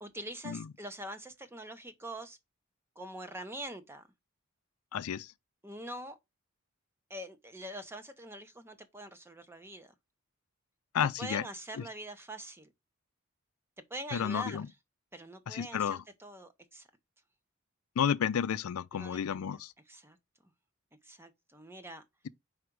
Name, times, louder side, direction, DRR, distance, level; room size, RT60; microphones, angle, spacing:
voice 1, 0.0-2.4 3.0-4.1 5.6-6.2 7.1-9.9 11.2-12.7 13.9-14.6 15.1-16.9 18.9-19.6 19.9-20.2 20.4-20.5 21.0-22.0, right 1 dB, 10° right, 0.8 m, -44 dB
voice 2, 4.9-5.3 10.9-11.5 11.8-11.9 14.1-14.7 15.5-16.0 18.0-19.7, left 8 dB, 90° left, 0.4 m, -31 dB
5.0 x 4.8 x 4.6 m
head